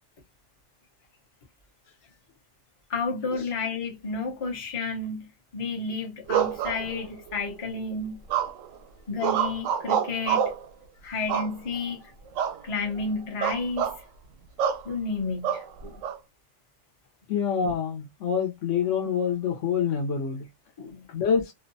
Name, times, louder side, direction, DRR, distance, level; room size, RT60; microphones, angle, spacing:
voice 1, 2.9-8.2 9.1-10.5 11.0-12.0 12.6-13.9 14.8-16.0 20.8-21.1, left 3 dB, 35° left, 0.6 m, -31 dB
sound 1, 6.3-7.3 8.3-8.8 9.2-10.6 11.3-11.9 12.3-12.6 12.9-13.1 13.4-14.0 14.6-14.8 15.4-16.2, right 9 dB, 85° right, 1.0 m, -27 dB
voice 2, 17.3-20.5 21.1-21.5, left 7 dB, 70° left, 1.1 m, -26 dB
2.6 x 2.2 x 2.6 m
omnidirectional pair, 1.3 m